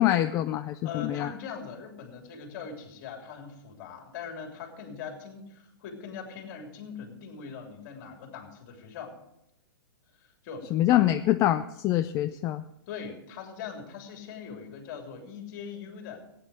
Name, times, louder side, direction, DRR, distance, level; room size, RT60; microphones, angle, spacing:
voice 1, 0.0-1.3 10.7-12.6, left 13 dB, 25° left, 9 dB, 0.4 m, -25 dB
voice 2, 0.8-9.1 10.2-11.1 12.9-16.2, left 6 dB, 45° left, 3 dB, 3.1 m, -41 dB
15.5 x 9.4 x 4.9 m, 0.84 s
hypercardioid pair, 125°, 12 cm